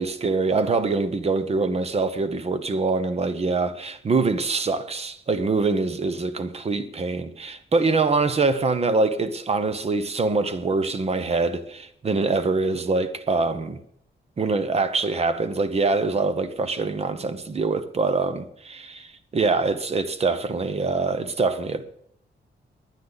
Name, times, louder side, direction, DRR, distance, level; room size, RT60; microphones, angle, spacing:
voice 1, 0.0-13.8 14.4-21.8, right 3 dB, 35° right, 0.9 m, -24 dB
19.5 x 10.5 x 4.0 m
wide cardioid pair, 165°, 19 cm